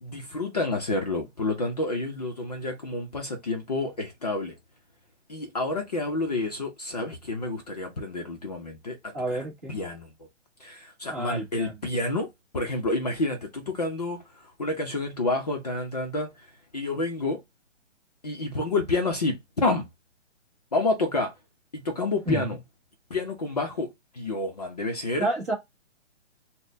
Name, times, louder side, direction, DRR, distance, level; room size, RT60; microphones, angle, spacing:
voice 1, 0.0-4.6 5.3-10.1 10.6-12.3 12.5-16.5 16.7-17.4 18.2-19.8 20.7-21.3 21.7-22.6 23.1-23.9 24.1-25.3, left 2 dB, 35° left, 0.6 m, -29 dB
voice 2, 9.1-9.8 11.1-11.7 22.3-22.6 25.2-25.5, right 2 dB, 15° right, 0.8 m, -30 dB
4.0 x 2.1 x 3.2 m
hypercardioid pair, 175°, 36 cm